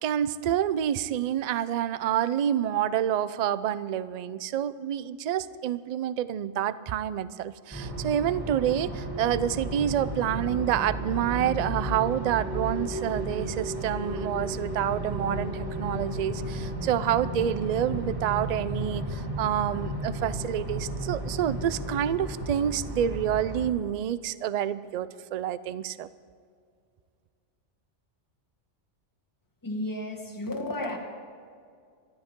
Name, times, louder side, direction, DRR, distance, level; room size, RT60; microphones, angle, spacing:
voice 1, 0.0-26.1, right 10 dB, 60° right, 16 dB, 0.4 m, -28 dB
sound 1, 7.7-23.7, right 1 dB, 15° right, 3.2 m, -34 dB
voice 2, 29.6-31.0, left 1 dB, 15° left, 0 dB, 1.8 m, -32 dB
25.5 x 12.5 x 3.7 m, 2.2 s
omnidirectional pair, 1.2 m